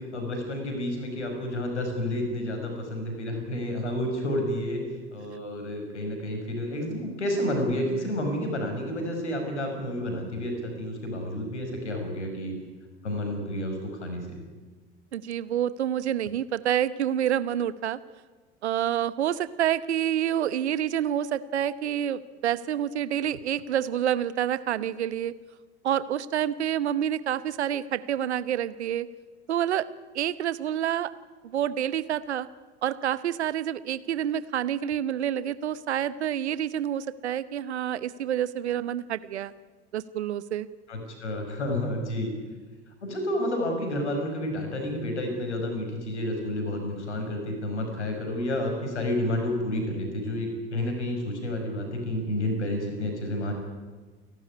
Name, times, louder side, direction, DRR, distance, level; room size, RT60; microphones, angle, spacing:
voice 1, 0.1-4.8 5.1-12.6 13.0-14.3 40.9-42.3 43.0-53.5, left 1 dB, 75° left, 4 dB, 5.4 m, -30 dB
voice 2, 15.1-18.0 18.6-25.3 25.8-29.1 29.5-29.9 30.1-31.1 31.4-32.5 32.8-39.5 39.9-40.7, right 10 dB, 70° right, 16 dB, 1.0 m, -28 dB
28.0 x 12.5 x 9.8 m, 1.4 s
figure-of-eight pair, 70°, 35 cm